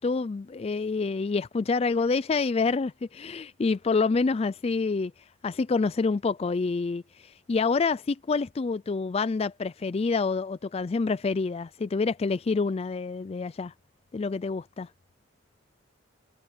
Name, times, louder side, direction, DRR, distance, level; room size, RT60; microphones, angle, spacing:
voice 1, 0.0-5.1 5.4-13.7 14.1-14.9, left 4 dB, 30° left, 0.3 m, -27 dB
head